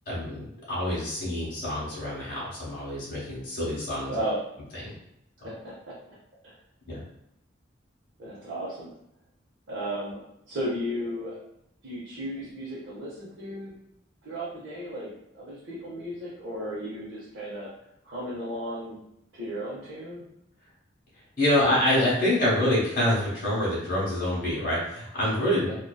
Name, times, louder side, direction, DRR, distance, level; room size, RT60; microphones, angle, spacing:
voice 1, 0.1-4.2 4.7-4.9 6.9-7.0 21.4-25.8, left 1 dB, 45° left, -6 dB, 0.8 m, -26 dB
voice 2, 4.1-4.4 5.4-5.9 6.4-6.5 8.2-8.9 9.7-10.2 10.5-11.4 11.8-13.7 14.2-17.7 18.0-19.0 19.3-20.2, equal, 75° right, -8 dB, 0.6 m, -34 dB
2.6 x 2.2 x 2.2 m, 0.79 s
head